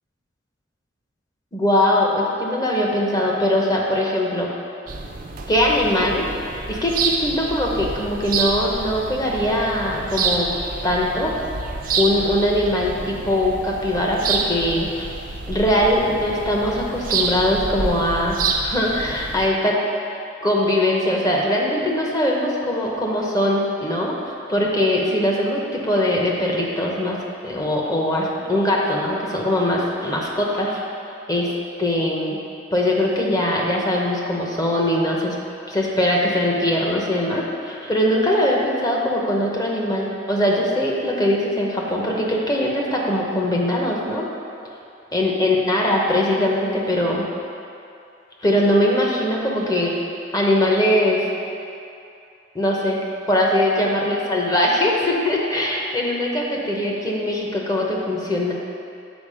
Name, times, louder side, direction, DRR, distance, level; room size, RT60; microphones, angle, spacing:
voice 1, 1.5-4.5 5.5-6.2 6.5-10.5 10.8-11.3 12.0-15.1 15.5-18.4 18.6-19.8 20.4-24.1 24.5-27.2 27.4-30.8 31.3-31.5 31.8-32.4 32.7-35.4 35.7-44.3 45.1-47.2 48.4-49.9 50.3-51.2 52.5-53.0 53.3-58.5, left 1 dB, 20° left, -2 dB, 0.9 m, -21 dB
sound 1, 4.9-19.5, right 4 dB, 45° right, 0.5 m, -28 dB
7.2 x 4.7 x 4.9 m, 2.6 s
head